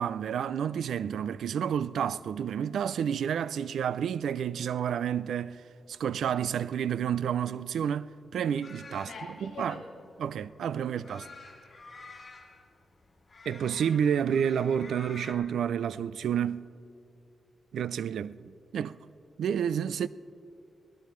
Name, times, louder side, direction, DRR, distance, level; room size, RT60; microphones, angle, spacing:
voice 1, 0.0-5.6 5.9-9.1 9.6-9.8 10.2-11.3 13.5-16.7 17.7-19.0 19.4-20.1, right 8 dB, 85° right, 0.3 m, -30 dB
sound 1, 8.6-15.3, left 3 dB, 45° left, 3.1 m, -49 dB
voice 2, 8.9-11.2, left 3 dB, 75° left, 1.8 m, -46 dB
23.5 x 17.5 x 3.1 m
cardioid pair, 70°, 0 cm